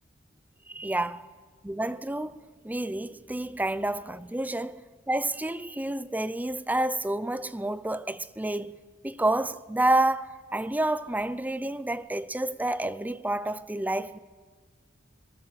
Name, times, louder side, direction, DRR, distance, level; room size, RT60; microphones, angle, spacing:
voice 1, 0.7-1.2 1.7-2.4 2.6-4.8 5.1-14.2, right 1 dB, 10° right, 0.6 m, -29 dB
27.5 x 18.5 x 7.6 m
head